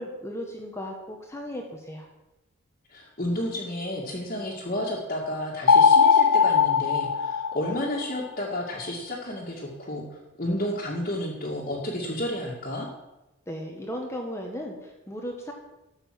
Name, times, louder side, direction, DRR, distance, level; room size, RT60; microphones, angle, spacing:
voice 1, 0.0-2.1 13.5-15.5, equal, 10° left, 1 dB, 1.6 m, -36 dB
voice 2, 2.9-12.9, left 1 dB, 35° left, -5 dB, 2.3 m, -31 dB
sound 1, 5.7-8.1, left 6 dB, 85° left, 0.6 m, -19 dB
13.5 x 8.1 x 7.7 m, 0.98 s
head